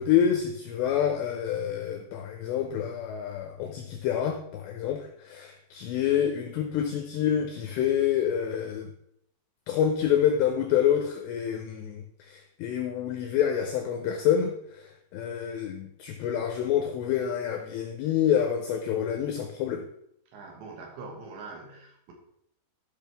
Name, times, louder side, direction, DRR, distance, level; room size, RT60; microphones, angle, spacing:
voice 1, 0.0-8.9 9.7-19.8, left 9 dB, 85° left, 4 dB, 2.5 m, -27 dB
voice 2, 20.3-22.1, right 3 dB, 70° right, 1 dB, 3.2 m, -43 dB
12.5 x 5.9 x 3.4 m, 0.74 s
omnidirectional pair, 5.8 m